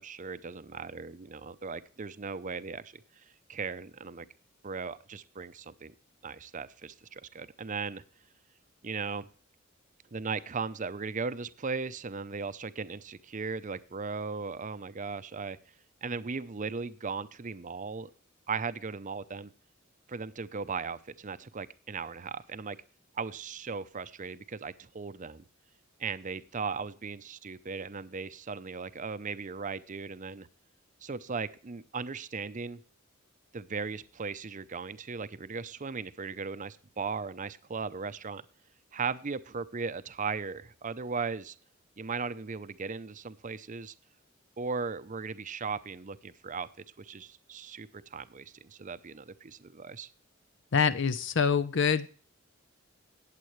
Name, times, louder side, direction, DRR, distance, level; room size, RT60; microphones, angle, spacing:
voice 1, 0.0-3.0 3.5-4.3 4.6-5.9 6.2-8.0 8.8-9.3 10.1-15.6 16.0-18.1 18.5-19.5 20.1-22.8 23.1-25.4 26.0-30.5 31.0-32.8 33.5-38.4 38.9-41.6 42.0-43.9 44.6-46.7 47.0-50.1, right 5 dB, 40° right, 13 dB, 0.6 m, -37 dB
voice 2, 50.7-52.1, left 6 dB, 60° left, 13 dB, 0.6 m, -25 dB
18.0 x 7.6 x 3.2 m, 0.41 s
head